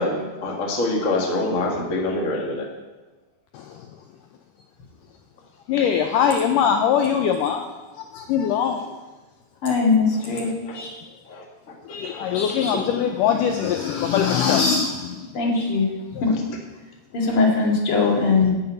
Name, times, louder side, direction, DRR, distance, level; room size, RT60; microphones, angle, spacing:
voice 1, 0.0-2.7 10.6-10.8 11.3-11.4 12.0-12.4 12.7-12.8, left 2 dB, 65° left, 0 dB, 0.7 m, -25 dB
voice 2, 3.5-3.9 5.7-7.7 7.9-8.9 10.7-11.1 11.9-15.7, left 7 dB, 80° left, 4 dB, 1.9 m, -22 dB
voice 3, 9.6-10.5 15.3-15.9 16.2-16.3 17.1-18.5, left 4 dB, 40° left, -1 dB, 2.4 m, -20 dB
11.0 x 5.9 x 8.9 m, 1.2 s
omnidirectional pair, 4.4 m